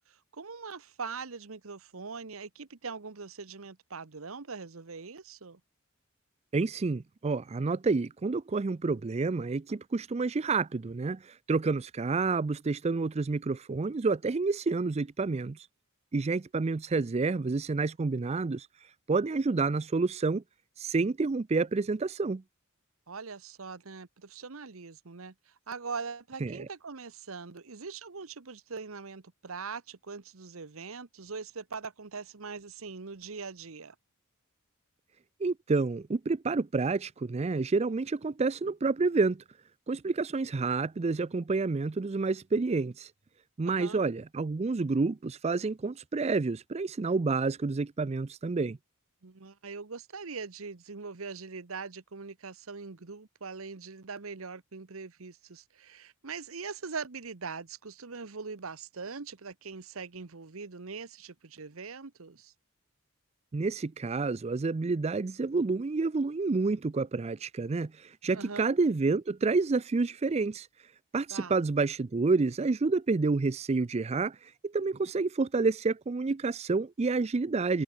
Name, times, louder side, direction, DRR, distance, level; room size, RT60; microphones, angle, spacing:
voice 1, 0.1-5.6 23.1-33.9 43.7-44.0 49.2-62.5 68.3-68.7 71.3-71.6, right 5 dB, 70° right, 1.0 m, -42 dB
voice 2, 6.5-15.7 16.1-18.7 19.1-20.4 20.8-22.4 26.4-26.7 35.4-39.4 39.9-43.1 43.6-48.8 63.5-70.7 71.1-77.8, right 3 dB, 30° right, 0.4 m, -29 dB
head